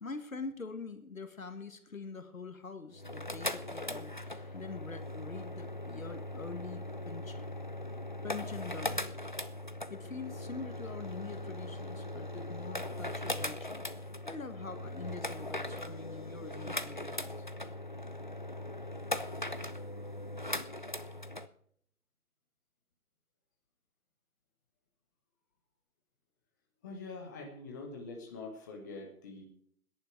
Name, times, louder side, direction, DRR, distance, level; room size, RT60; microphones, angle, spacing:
voice 1, 0.0-7.4 8.2-9.1 9.9-17.3, left 4 dB, 65° left, 9 dB, 1.9 m, -45 dB
sound 1, 2.9-21.5, left 1 dB, 35° left, 0.5 m, -39 dB
voice 2, 26.8-29.4, left 3 dB, 15° left, 0 dB, 1.2 m, -44 dB
19.0 x 10.5 x 4.6 m, 0.66 s
figure-of-eight pair, 155°, 44 cm